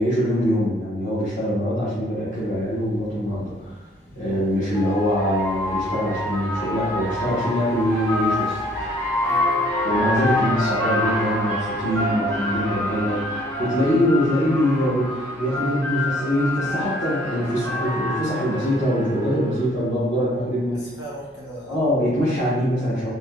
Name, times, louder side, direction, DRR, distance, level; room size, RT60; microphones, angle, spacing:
voice 1, 0.0-3.8 4.2-8.9 9.8-20.8 21.7-23.1, equal, 45° left, -10 dB, 0.9 m, -23 dB
sound 1, 2.5-2.6 4.1-19.7, left 1 dB, 10° left, 0.6 m, -27 dB
voice 2, 4.1-4.6 9.2-9.8 20.7-21.9, right 1 dB, 85° left, -5 dB, 1.0 m, -39 dB
3.4 x 2.6 x 2.3 m, 1.1 s
head